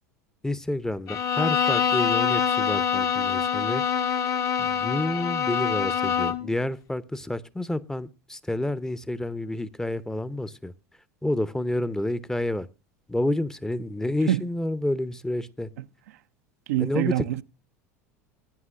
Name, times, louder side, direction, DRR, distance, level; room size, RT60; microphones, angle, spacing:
voice 1, 0.4-3.8 4.6-10.7 11.2-12.7 13.1-15.7 16.8-17.3, left 1 dB, 5° left, 0.7 m, -29 dB
Bowed string instrument, 1.1-6.5, left 7 dB, 40° left, 1.0 m, -25 dB
voice 2, 16.7-17.4, right 13 dB, 70° right, 0.5 m, -25 dB
19.0 x 9.5 x 2.5 m
hypercardioid pair, 80°, 8 cm